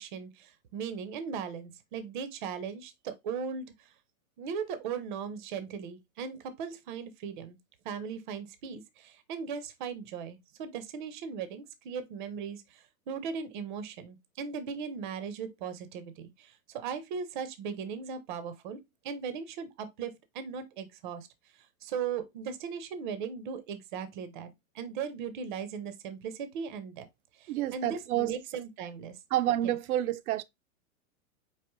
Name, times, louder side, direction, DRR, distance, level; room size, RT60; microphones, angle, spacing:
voice 1, 0.0-3.7 4.4-7.6 7.8-18.8 19.0-21.3 21.8-24.5 24.7-27.1 27.4-29.2 29.6-29.8, right 6 dB, 35° right, 0.5 m, -38 dB
voice 2, 27.5-28.3 29.3-30.4, right 13 dB, 85° right, 0.5 m, -29 dB
4.7 x 2.9 x 2.9 m
supercardioid pair, 165°, 42 cm